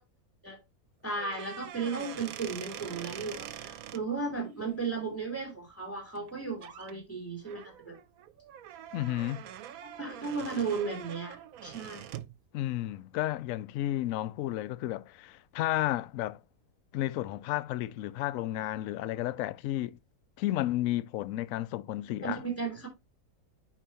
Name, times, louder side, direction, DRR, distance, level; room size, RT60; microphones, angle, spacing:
voice 1, 1.0-8.0 9.8-12.0 22.2-22.9, right 4 dB, 10° left, 2.9 m, -35 dB
sound 1, 1.1-4.0 6.2-6.3 6.6-6.9 7.4-12.3, right 10 dB, 70° right, 1.0 m, -44 dB
voice 2, 8.9-9.4 12.5-16.4 16.9-20.0 20.4-22.4, left 14 dB, 70° left, 0.8 m, -32 dB
9.0 x 4.6 x 2.9 m
omnidirectional pair, 1.7 m